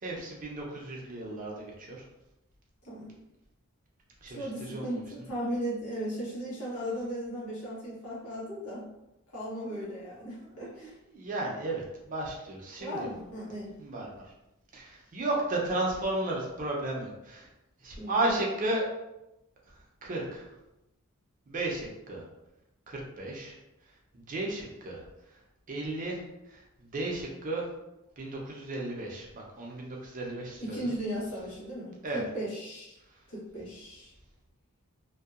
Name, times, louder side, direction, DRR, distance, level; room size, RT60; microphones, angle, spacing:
voice 1, 0.0-2.1 4.2-5.0 9.7-10.0 10.4-13.1 13.8-14.3 14.7-17.5 17.8-18.9 19.7-20.5 21.5-22.3 22.9-23.6 24.1-25.4 25.7-27.7 28.2-30.9 32.0-32.2, right 2 dB, 40° right, -1 dB, 0.5 m, -34 dB
voice 2, 4.3-8.8 9.3-10.9 12.8-13.7 18.0-18.2 30.6-33.0 33.3-34.1, equal, 85° left, -6 dB, 1.0 m, -36 dB
2.6 x 2.2 x 2.4 m, 0.92 s
head